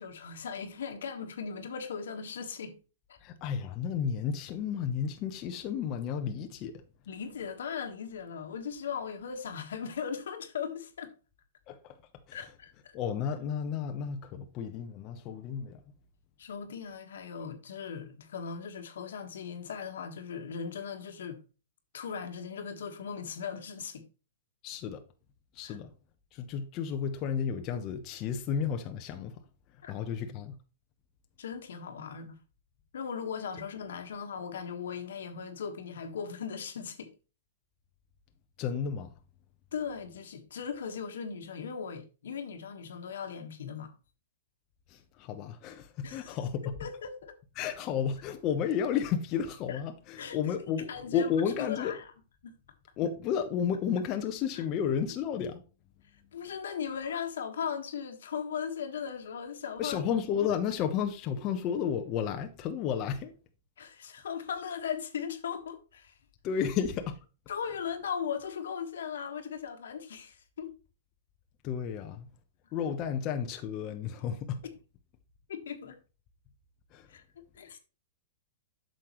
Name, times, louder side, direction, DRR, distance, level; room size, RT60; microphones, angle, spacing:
voice 1, 0.0-2.8 3.1-3.2 7.1-11.1 12.3-12.9 16.4-21.4 21.9-24.0 25.6-25.8 29.8-29.9 31.4-32.4 32.9-37.1 39.7-43.9 46.0-46.4 46.6-47.3 49.7-49.8 50.2-50.4 50.8-51.3 51.6-52.1 52.4-52.5 54.6-54.7 56.3-60.0 63.8-66.1 67.5-70.7 74.6-74.7 75.5-76.0 77.1-77.2 77.5-77.8, left 7 dB, 80° left, 1.5 m, -38 dB
voice 2, 3.2-6.8 11.7-12.0 12.3-12.4 12.9-15.8 24.6-25.0 25.5-25.9 26.3-29.4 29.9-30.6 38.6-39.1 44.9-46.7 47.6-51.9 53.0-55.6 59.8-63.3 66.4-67.2 71.6-72.3 72.7-74.6 76.9-77.1, left 7 dB, 35° left, 0.9 m, -32 dB
8.4 x 6.6 x 3.1 m
hypercardioid pair, 150°, 0 cm